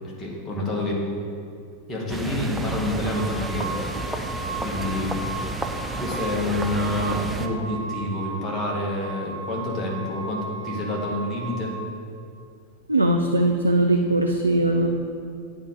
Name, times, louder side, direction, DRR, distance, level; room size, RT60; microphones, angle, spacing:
voice 1, 0.2-1.1 1.9-4.1 4.5-5.3 6.0-11.7, left 1 dB, 20° left, -4 dB, 1.9 m, -28 dB
sound 1, 2.1-7.5, right 2 dB, 10° right, 0.6 m, -31 dB
sound 2, 2.9-11.7, right 3 dB, 50° right, 1.5 m, -36 dB
voice 2, 12.9-14.9, right 1 dB, 80° right, 4 dB, 0.4 m, -20 dB
8.8 x 4.0 x 6.5 m, 2.4 s
figure-of-eight pair, 90°, 0 cm